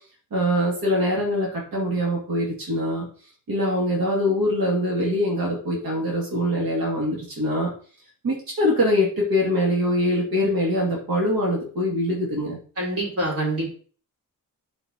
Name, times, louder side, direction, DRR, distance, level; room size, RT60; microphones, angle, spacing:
voice 1, 0.3-3.1 3.5-7.7 8.2-12.6, left 1 dB, 90° right, -3 dB, 2.3 m, -23 dB
voice 2, 12.8-13.7, right 1 dB, 45° right, -3 dB, 3.4 m, -26 dB
11.0 x 4.8 x 2.8 m, 0.41 s
wide cardioid pair, 150°, 34 cm